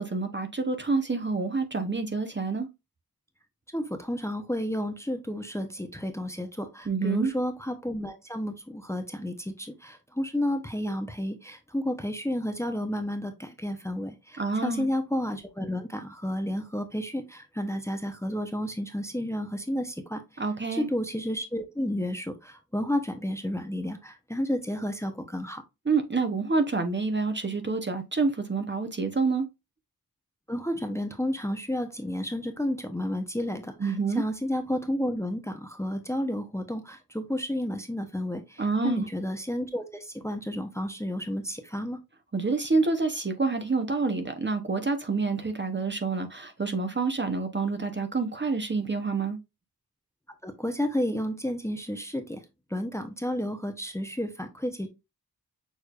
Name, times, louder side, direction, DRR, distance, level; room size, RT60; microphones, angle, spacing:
voice 1, 0.0-2.7 6.9-7.3 14.4-14.9 20.4-20.9 25.9-29.5 33.8-34.2 38.6-39.0 42.3-49.4, right 4 dB, 30° right, 0.8 m, -27 dB
voice 2, 3.7-20.4 20.7-25.6 30.5-42.0 50.4-52.4 52.7-54.9, left 1 dB, 5° left, 0.8 m, -31 dB
6.4 x 3.2 x 2.4 m
wide cardioid pair, 70°, 38 cm